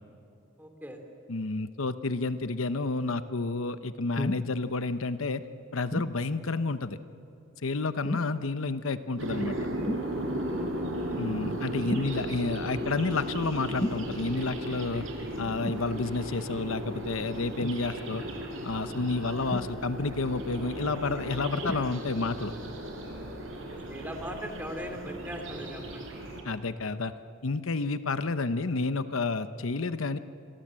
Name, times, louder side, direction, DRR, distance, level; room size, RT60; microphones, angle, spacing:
voice 1, 0.6-1.0 10.5-10.9 23.7-26.2, equal, 10° right, 4 dB, 2.7 m, -40 dB
voice 2, 1.3-5.4 5.7-7.0 7.6-9.6 11.2-15.0 15.4-18.2 18.6-22.5 26.4-27.1 27.4-30.2, left 3 dB, 80° left, 11 dB, 0.9 m, -30 dB
sound 1, 4.2-4.5 5.9-6.2 8.0-8.4 9.9-10.1 11.9-12.2 13.8-14.1 15.6-15.9 17.6-17.8 19.5-20.1 21.6-21.9 22.7-22.8, left 1 dB, 25° left, 0.8 m, -33 dB
sound 2, 9.2-26.4, right 1 dB, 70° right, 4.8 m, -36 dB
28.5 x 22.5 x 7.6 m, 2.9 s
head